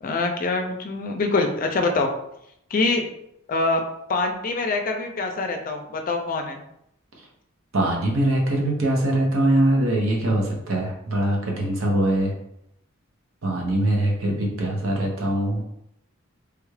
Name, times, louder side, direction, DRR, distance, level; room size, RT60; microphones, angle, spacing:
voice 1, 0.0-2.1 2.7-3.1 3.5-3.8 4.1-6.6, left 3 dB, 45° left, 4 dB, 0.4 m, -24 dB
voice 2, 7.7-12.3 13.4-15.6, right 1 dB, 80° right, -1 dB, 0.8 m, -22 dB
3.3 x 2.4 x 3.2 m, 0.79 s
head